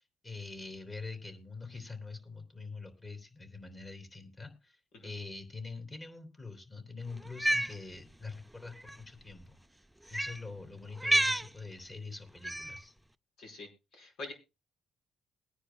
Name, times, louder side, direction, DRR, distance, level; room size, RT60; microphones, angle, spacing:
voice 1, 0.0-9.6 10.1-12.9, left 3 dB, 30° left, 6 dB, 3.4 m, -45 dB
Cat, 7.3-7.7 8.8-9.0 10.1-10.4 11.0-11.5 12.4-12.8, right 1 dB, 5° right, 0.5 m, -29 dB
voice 2, 13.4-14.3, left 2 dB, 80° left, 3 dB, 5.0 m, -45 dB
22.0 x 9.9 x 2.3 m, 0.27 s
cardioid pair, 90°, 0 cm